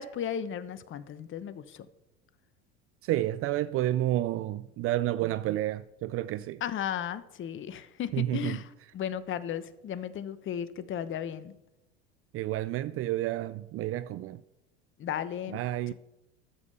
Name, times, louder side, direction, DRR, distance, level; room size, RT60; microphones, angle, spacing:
voice 1, 0.0-1.9 6.6-8.7 8.9-11.5 15.0-15.6, left 9 dB, 40° left, 1.0 m, -35 dB
voice 2, 3.0-6.6 8.1-8.6 12.3-14.4 15.5-15.9, right 14 dB, 45° right, 0.5 m, -30 dB
13.0 x 7.3 x 6.9 m
hypercardioid pair, 80°, 32 cm